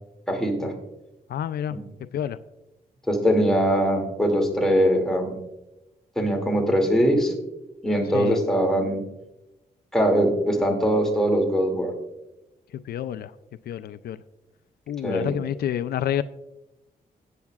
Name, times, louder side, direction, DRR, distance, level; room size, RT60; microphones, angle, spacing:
voice 1, 0.3-0.7 1.7-1.8 3.1-5.4 6.2-7.3 7.8-9.0 9.9-11.9 15.0-15.4, equal, 5° left, 1 dB, 2.4 m, -22 dB
voice 2, 1.3-1.8 2.1-2.4 8.1-8.4 12.9-13.3 13.7-14.2 14.9-16.2, left 10 dB, 80° left, 13 dB, 0.4 m, -28 dB
18.0 x 8.4 x 2.4 m, 0.94 s
cardioid pair, 95°, 16 cm